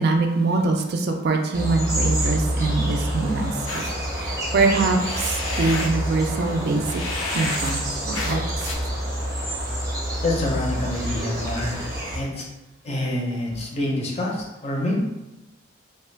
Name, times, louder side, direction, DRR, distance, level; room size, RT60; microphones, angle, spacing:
voice 1, 0.0-3.8 4.2-5.0 5.6-7.0 7.3-8.4 11.2-11.5 13.1-13.2, right 3 dB, 50° right, 4 dB, 0.3 m, -23 dB
sound 1, 1.5-12.2, right 1 dB, 15° right, 0.6 m, -27 dB
sound 2, 3.7-8.7, left 3 dB, 85° left, 0.5 m, -32 dB
voice 2, 10.2-11.7 12.1-12.4 12.8-15.0, left 1 dB, 30° left, -1 dB, 0.5 m, -26 dB
3.1 x 2.2 x 3.2 m, 0.92 s
head